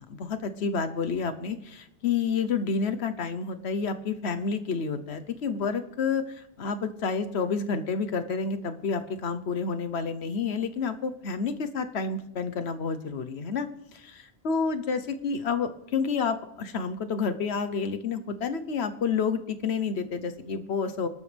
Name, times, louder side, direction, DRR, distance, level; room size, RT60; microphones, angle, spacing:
voice 1, 0.0-6.2 6.6-13.7 13.9-14.1 14.4-21.1, left 5 dB, 80° left, 10 dB, 1.2 m, -29 dB
27.0 x 12.5 x 3.4 m, 0.87 s
omnidirectional pair, 1.1 m